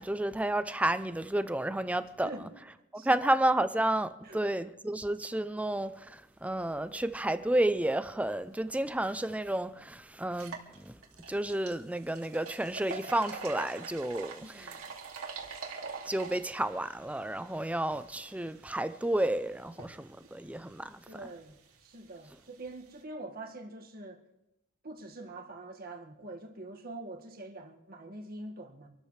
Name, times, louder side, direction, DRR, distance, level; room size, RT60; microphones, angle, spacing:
voice 1, 0.0-2.5 2.9-11.0 11.3-14.8 16.1-21.2, right 1 dB, 5° right, 0.5 m, -31 dB
sound 1, 9.0-9.1 9.5-9.6 10.2-23.0, right 4 dB, 85° right, 2.5 m, -46 dB
voice 2, 14.4-14.8 21.1-24.2 24.8-28.9, right 2 dB, 45° right, 1.9 m, -45 dB
26.5 x 13.0 x 3.3 m
head